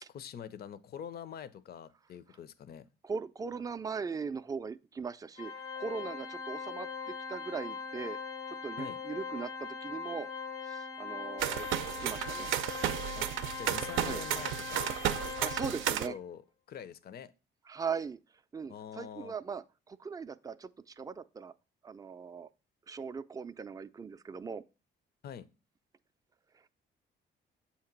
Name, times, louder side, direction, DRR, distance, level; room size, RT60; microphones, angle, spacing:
voice 1, 0.1-2.9 8.8-9.0 13.1-13.3 13.6-15.0 15.6-16.4 16.7-17.3 18.7-19.3 25.2-25.5, left 8 dB, 50° left, 0.5 m, -45 dB
voice 2, 3.0-8.2 8.5-10.3 10.6-11.7 12.0-12.5 14.0-14.2 15.4-16.1 17.7-18.2 18.5-21.5 21.8-22.5 22.9-24.6, right 5 dB, 20° right, 0.4 m, -39 dB
Organ, 5.4-16.1, left 5 dB, 90° left, 1.0 m, -41 dB
sound 1, 11.4-16.1, right 11 dB, 85° right, 0.5 m, -33 dB
7.2 x 2.9 x 5.8 m
cardioid pair, 90°, 20 cm